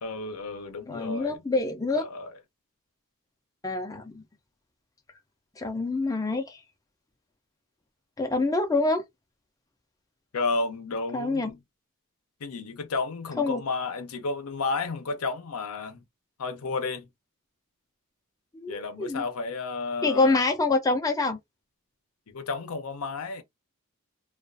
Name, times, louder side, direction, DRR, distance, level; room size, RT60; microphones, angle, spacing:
voice 1, 0.0-1.7 1.9-2.3 10.3-11.6 12.4-16.0 16.4-17.1 18.7-20.4 22.3-23.4, left 3 dB, 75° left, 0.6 m, -32 dB
voice 2, 0.9-2.1 3.6-4.2 5.6-6.6 8.2-9.0 11.1-11.5 13.4-13.6 18.5-19.2 20.0-21.4, left 3 dB, 15° left, 0.4 m, -26 dB
2.3 x 2.3 x 2.4 m
head